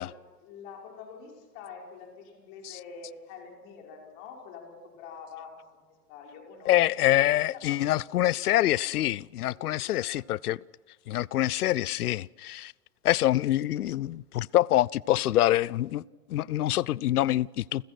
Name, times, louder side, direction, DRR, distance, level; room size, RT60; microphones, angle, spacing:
voice 1, 0.0-6.8 7.4-8.8 9.3-10.1, left 5 dB, 40° left, 5.7 m, -47 dB
voice 2, 6.7-10.6 11.1-12.7 13.0-16.0 16.3-17.8, left 14 dB, 70° left, 0.6 m, -25 dB
29.5 x 15.0 x 6.1 m
figure-of-eight pair, 115°, 47 cm